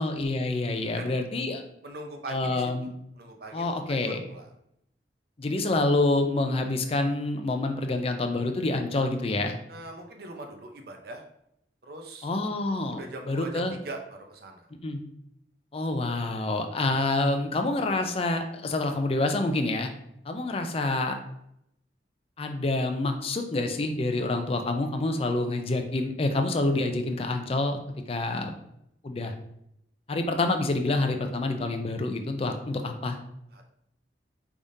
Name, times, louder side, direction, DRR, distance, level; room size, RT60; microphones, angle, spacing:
voice 1, 0.0-1.6 2.3-2.9 3.5-4.2 5.4-9.6 12.2-13.0 13.3-13.7 14.8-15.0 15.7-19.9 20.3-21.2 22.4-27.8 28.1-28.5 29.0-29.3 30.1-33.2, left 2 dB, 35° left, 6 dB, 0.4 m, -27 dB
voice 2, 1.8-4.5 9.7-11.2 11.8-12.3 12.9-14.7 33.5-33.7, right 2 dB, 60° right, 4 dB, 0.7 m, -41 dB
4.9 x 3.5 x 2.7 m, 0.77 s
head